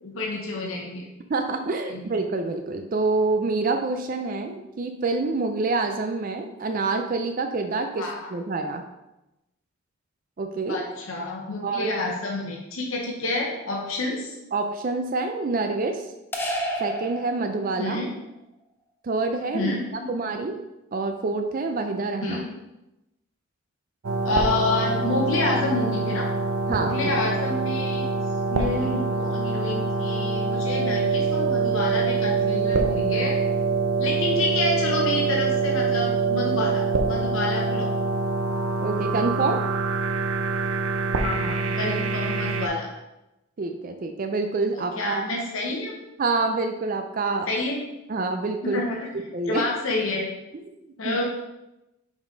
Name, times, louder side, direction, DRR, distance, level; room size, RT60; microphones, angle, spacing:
voice 1, 0.0-1.1 1.9-2.0 8.0-8.3 10.7-14.3 17.8-18.1 19.5-20.1 22.2-22.4 24.2-26.3 26.7-28.0 28.5-33.4 34.0-37.9 41.2-42.9 45.0-45.9 47.5-47.8 48.6-49.0 49.5-50.3 51.0-51.3, left 2 dB, 70° left, -1 dB, 0.9 m, -28 dB
voice 2, 1.3-8.8 10.4-10.8 11.6-12.0 14.5-16.0 16.8-18.0 19.0-19.7 20.1-20.6 20.9-22.4 26.7-27.1 38.8-39.6 41.8-41.9 43.6-45.3 46.2-47.5 48.1-48.8 49.3-49.7 51.0-51.2, right 3 dB, 40° right, 6 dB, 0.4 m, -27 dB
sound 1, 16.3-18.0, equal, 10° left, 0.6 m, -30 dB
sound 2, 24.0-42.7, right 4 dB, 80° right, 0.7 m, -25 dB
5.4 x 5.1 x 3.8 m, 0.95 s
head